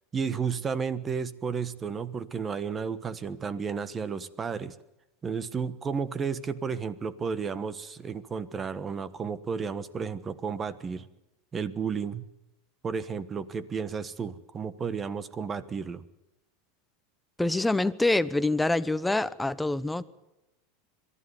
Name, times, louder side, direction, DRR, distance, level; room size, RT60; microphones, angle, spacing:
voice 1, 0.1-4.8 5.2-11.1 11.5-12.3 12.8-16.0, right 6 dB, 25° right, 1.3 m, -32 dB
voice 2, 17.4-20.0, left 2 dB, 5° left, 0.9 m, -26 dB
22.5 x 13.0 x 9.6 m
hypercardioid pair, 105°, 0 cm